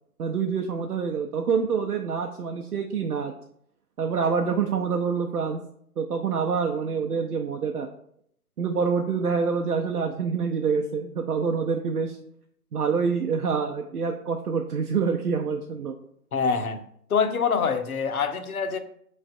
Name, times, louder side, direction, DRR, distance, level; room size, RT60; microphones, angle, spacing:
voice 1, 0.2-3.3 4.0-5.6 6.0-7.9 8.6-12.2 12.7-15.9, right 5 dB, 75° right, 3 dB, 0.6 m, -26 dB
voice 2, 16.3-16.8 17.1-18.8, left 6 dB, 65° left, 9 dB, 0.6 m, -25 dB
5.3 x 3.1 x 2.4 m, 0.68 s
figure-of-eight pair, 150°, 46 cm